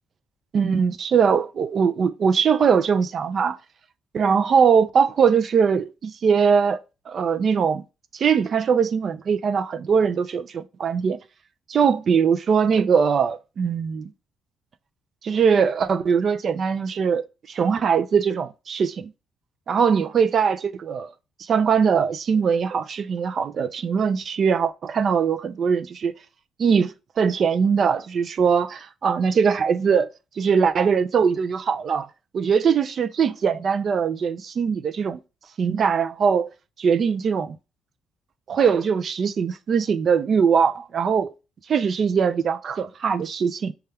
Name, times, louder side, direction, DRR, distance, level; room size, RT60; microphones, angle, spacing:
voice 1, 0.5-3.6 4.1-6.8 7.1-7.8 8.1-11.2 11.7-14.1 15.2-19.1 19.7-21.1 21.4-26.1 26.6-30.1 30.4-32.1 32.3-35.2 35.6-36.5 36.8-37.6 38.5-41.3 41.7-43.7, right 6 dB, 55° right, 0.3 m, -21 dB
5.5 x 2.3 x 3.3 m
cardioid pair, 90°, 0 cm